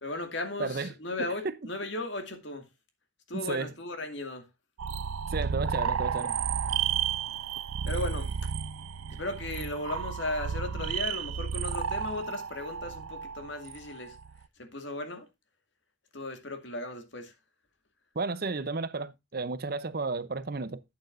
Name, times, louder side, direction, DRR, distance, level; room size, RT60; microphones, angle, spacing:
voice 1, 0.0-2.6 3.3-4.5 7.9-8.5 9.1-14.2 14.6-15.3 16.1-17.3, left 2 dB, 60° left, 2.3 m, -36 dB
voice 2, 0.6-0.9 1.2-1.5 3.3-3.7 5.3-6.4 18.2-20.8, right 3 dB, 45° right, 0.7 m, -33 dB
sound 1, 4.8-14.4, right 7 dB, 90° right, 0.5 m, -32 dB
12.0 x 8.7 x 2.5 m
head